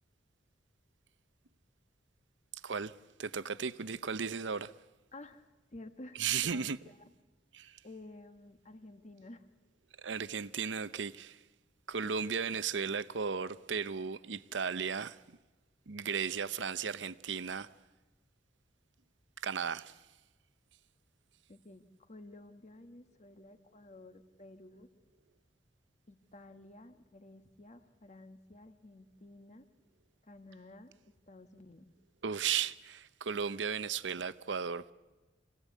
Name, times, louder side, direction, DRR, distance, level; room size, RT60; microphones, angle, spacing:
voice 1, 2.6-4.7 6.2-6.8 7.5-7.8 10.0-11.4 11.9-15.4 15.9-17.7 19.4-20.0 32.2-34.9, right 6 dB, 85° right, 0.7 m, -35 dB
voice 2, 5.1-5.4 5.7-7.0 7.8-9.5 21.5-24.9 26.1-29.7 30.2-31.9, left 2 dB, 40° left, 1.4 m, -52 dB
26.5 x 17.5 x 8.3 m
head